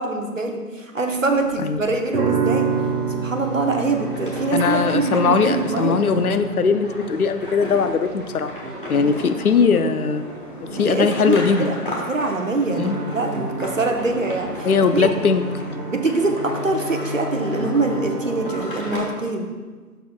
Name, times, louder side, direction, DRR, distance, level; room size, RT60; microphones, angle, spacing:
voice 1, 0.0-2.7 3.1-6.0 8.9-9.0 10.7-11.7 12.1-14.7 14.9-15.1 15.9-19.5, right 3 dB, 55° right, 3 dB, 0.9 m, -24 dB
sound 1, 1.2-12.4 12.8-19.1, right 4 dB, 80° right, 1.4 m, -31 dB
sound 2, 2.5-19.0, left 1 dB, 35° left, 1.3 m, -35 dB
voice 2, 4.5-8.5 8.9-10.3 10.7-11.7 12.7-13.0 14.6-15.4, left 5 dB, 65° left, 9 dB, 0.6 m, -20 dB
10.5 x 6.8 x 2.2 m, 1.4 s
figure-of-eight pair, 165°, 47 cm